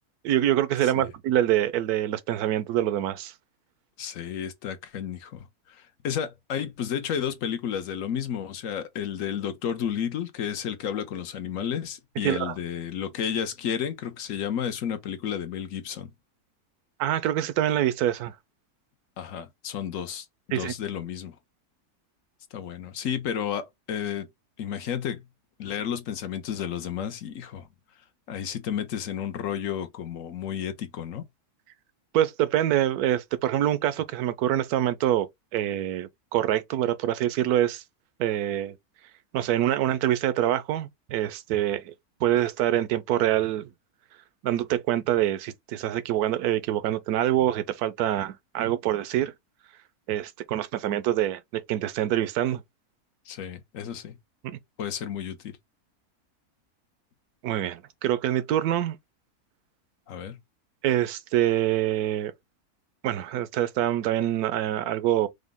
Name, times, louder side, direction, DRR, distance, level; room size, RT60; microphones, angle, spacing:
voice 1, 0.2-3.3 12.2-12.5 17.0-18.3 20.5-20.7 32.1-37.8 38.2-38.7 39.3-41.9 42.2-43.7 44.4-49.3 50.1-52.6 54.4-54.6 57.4-59.0 60.8-62.3 63.0-65.3, right 12 dB, 80° right, 1.1 m, -25 dB
voice 2, 4.0-16.1 19.2-21.4 22.5-24.3 24.6-25.2 25.6-27.7 28.3-31.2 53.3-54.2 54.8-55.6 60.1-60.4, left 8 dB, 65° left, 1.1 m, -32 dB
5.1 x 2.2 x 3.5 m
omnidirectional pair, 1.6 m